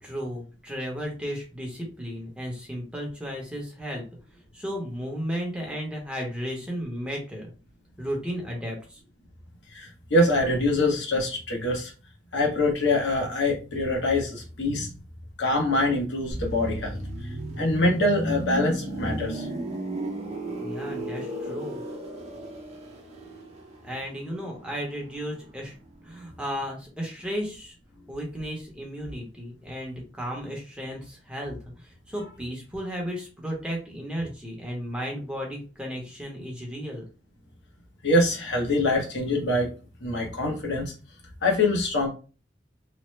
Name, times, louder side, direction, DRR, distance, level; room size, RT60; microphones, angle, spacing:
voice 1, 0.0-4.0 4.5-7.5 8.0-9.0 20.6-21.8 23.8-25.8 26.0-27.7 28.1-37.0, equal, 5° right, -1 dB, 0.8 m, -34 dB
voice 2, 9.7-11.9 12.3-14.9 15.4-17.0 17.6-19.5 38.0-39.7 40.0-40.9 41.4-42.1, left 2 dB, 85° left, 0 dB, 1.0 m, -24 dB
sound 1, 16.3-26.0 26.2-26.5, right 1 dB, 40° right, 0.8 m, -35 dB
3.0 x 2.0 x 3.1 m, 0.35 s
head